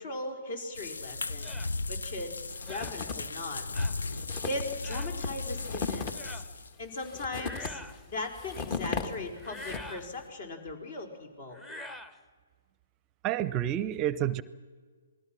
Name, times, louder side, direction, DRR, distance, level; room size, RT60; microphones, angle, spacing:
voice 1, 0.0-1.6 1.9-2.3 2.7-3.6 4.4-6.4 6.8-7.8 8.1-11.6, left 2 dB, 50° left, 4 dB, 4.8 m, -38 dB
sound 1, 0.7-6.7, left 3 dB, 75° left, 0.7 m, -36 dB
sound 2, 1.4-1.7 2.7-3.0 3.7-4.0 4.8-5.1 6.1-6.5 7.3-8.0 9.4-10.1 11.5-12.2, left 1 dB, 10° left, 1.2 m, -44 dB
sound 3, 2.5-3.4 3.7-3.8 4.0-10.1, left 4 dB, 35° left, 1.9 m, -37 dB
voice 2, 13.2-14.4, right 12 dB, 25° right, 18 dB, 0.7 m, -29 dB
27.5 x 20.0 x 6.1 m, 1.5 s
figure-of-eight pair, 130°, 0 cm